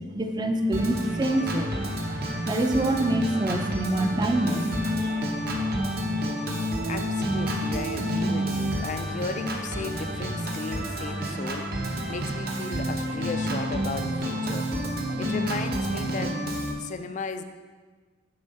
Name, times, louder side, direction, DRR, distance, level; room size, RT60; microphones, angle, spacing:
voice 1, 0.1-1.8 2.5-5.1, right 1 dB, 20° right, 5 dB, 0.5 m, -25 dB
Organ, 0.7-16.7, equal, 50° right, 0.9 m, -29 dB
voice 2, 6.9-14.7 15.0-16.4 16.8-17.4, left 4 dB, 40° left, 9 dB, 0.4 m, -35 dB
7.9 x 3.7 x 5.5 m, 1.4 s
head